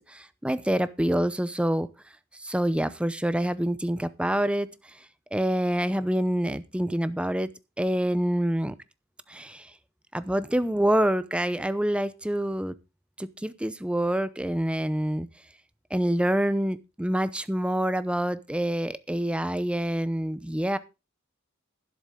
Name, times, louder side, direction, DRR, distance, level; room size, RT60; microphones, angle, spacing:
voice 1, 0.1-1.9 2.4-4.7 5.3-7.5 7.8-8.7 9.3-9.7 10.1-12.7 13.2-15.3 15.9-20.8, right 1 dB, 5° right, 14 dB, 0.6 m, -26 dB
12.0 x 10.5 x 3.7 m, 0.28 s
head